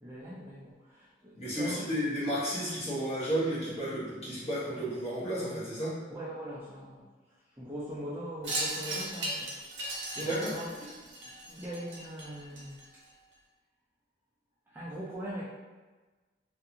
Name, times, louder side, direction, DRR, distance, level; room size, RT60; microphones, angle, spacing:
voice 1, 0.0-1.8 6.1-7.0 7.6-10.7 11.0-11.1 11.5-12.8 14.7-15.4, equal, 10° right, -8 dB, 0.3 m, -41 dB
voice 2, 1.3-6.0 10.2-10.5, equal, 35° left, -9 dB, 1.0 m, -32 dB
Wind chime, 8.4-13.1, right 1 dB, 85° right, 0.7 m, -37 dB
2.5 x 2.4 x 2.8 m, 1.3 s
head